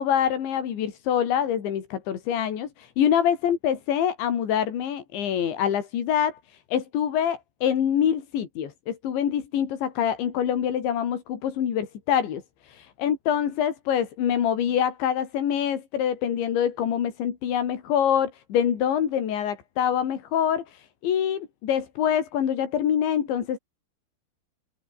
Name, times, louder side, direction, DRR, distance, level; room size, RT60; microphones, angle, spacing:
voice 1, 0.0-6.4 6.7-23.6, left 9 dB, 90° left, 5.3 m, -25 dB
omnidirectional pair, 5.1 m